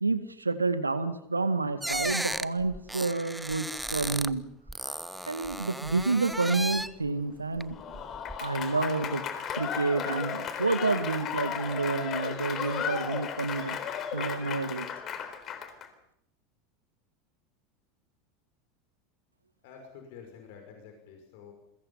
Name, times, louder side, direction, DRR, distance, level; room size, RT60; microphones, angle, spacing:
voice 1, 0.0-4.4 5.3-7.8 8.4-9.2 9.5-13.8 14.1-14.9, right 3 dB, 80° right, 11 dB, 1.9 m, -29 dB
sound 1, 1.8-4.4 4.7-7.1 7.5-8.4, right 1 dB, 5° right, 0.9 m, -35 dB
Applause / Crowd, 7.7-15.9, left 8 dB, 35° left, 3.8 m, -35 dB
voice 2, 19.6-21.5, left 6 dB, 55° left, 3 dB, 5.8 m, -49 dB
29.0 x 22.5 x 5.6 m, 0.74 s
figure-of-eight pair, 80°, 0 cm